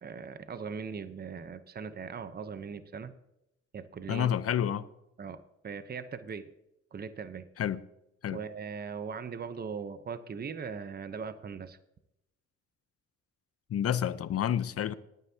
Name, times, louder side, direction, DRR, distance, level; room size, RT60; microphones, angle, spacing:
voice 1, 0.0-3.1 3.7-4.3 5.2-6.5 6.9-7.4 8.3-11.8, right 6 dB, 30° right, 0.8 m, -40 dB
voice 2, 4.1-4.9 7.6-7.8 8.2-8.4 13.7-14.9, left 10 dB, 50° left, 0.7 m, -29 dB
19.5 x 9.4 x 2.8 m
cardioid pair, 90°, 30 cm